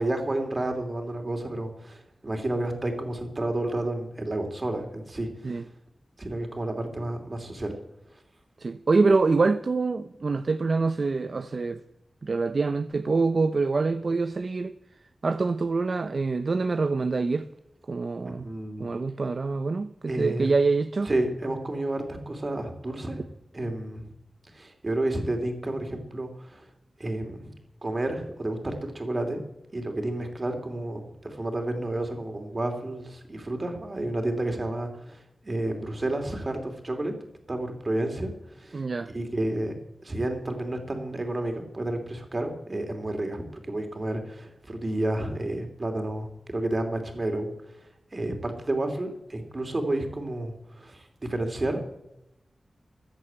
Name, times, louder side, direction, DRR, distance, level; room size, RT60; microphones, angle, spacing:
voice 1, 0.0-5.6 6.2-7.8 18.2-18.8 20.1-20.5 21.0-23.2 23.5-24.1 24.5-26.6 27.0-27.5 27.8-29.4 29.7-37.1 37.5-38.8 39.1-39.8 40.0-47.5 48.1-52.0, right 1 dB, 30° right, 3.0 m, -31 dB
voice 2, 8.6-11.8 12.2-14.7 15.2-17.5 17.9-18.5 18.8-21.1 38.7-39.1, right 3 dB, 50° right, 0.6 m, -25 dB
15.0 x 9.8 x 8.8 m
wide cardioid pair, 110°, 0 cm